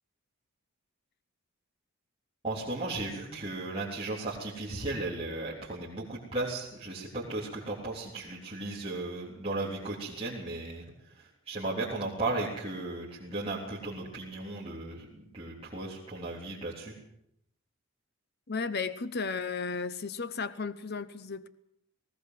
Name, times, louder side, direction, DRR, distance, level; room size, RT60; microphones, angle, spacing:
voice 1, 2.4-10.8 11.2-16.9, right 2 dB, 25° right, 3.6 m, -35 dB
voice 2, 18.5-21.5, left 4 dB, 45° left, 0.8 m, -34 dB
19.5 x 17.5 x 7.7 m
head